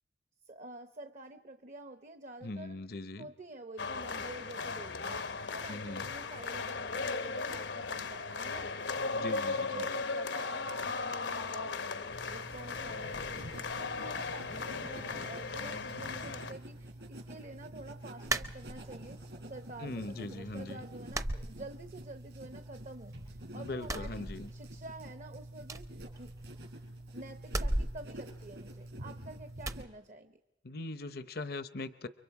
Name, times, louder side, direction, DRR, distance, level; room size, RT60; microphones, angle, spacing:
voice 1, 0.5-2.9 3.2-5.2 5.5-8.7 9.0-11.9 12.3-13.4 13.7-19.2 19.5-26.3 27.1-30.4, right 2 dB, 45° right, 8 dB, 0.9 m, -48 dB
voice 2, 2.4-3.3 5.7-6.1 9.1-9.8 19.8-20.8 23.6-24.5 30.6-32.1, left 2 dB, 60° left, 13 dB, 0.7 m, -40 dB
sound 1, 3.8-16.5, left 4 dB, 85° left, 1.0 m, -37 dB
sound 2, 12.1-29.9, right 1 dB, 75° right, 5.6 m, -47 dB
sound 3, 18.3-19.2 19.5-20.2 20.5-20.6 21.1-22.2 22.5-23.3 23.7-24.9 25.2-25.3 25.6-26.8 27.4-29.1 29.6-29.9, right 1 dB, 20° right, 0.7 m, -37 dB
29.5 x 23.5 x 4.8 m, 1.0 s
head